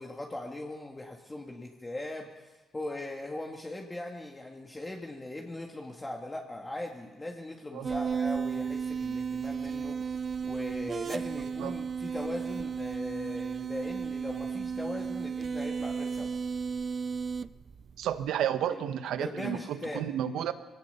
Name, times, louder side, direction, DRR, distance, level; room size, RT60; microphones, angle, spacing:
voice 1, 0.0-10.0 10.4-16.3 18.7-18.8 19.2-20.1, left 2 dB, 20° left, 0 dB, 2.1 m, -39 dB
sound 1, 7.8-18.3, right 6 dB, 40° right, 0.5 m, -34 dB
voice 2, 18.0-20.5, right 10 dB, 80° right, 10 dB, 1.2 m, -31 dB
21.5 x 17.5 x 6.9 m, 1.2 s
cardioid pair, 90°, 0 cm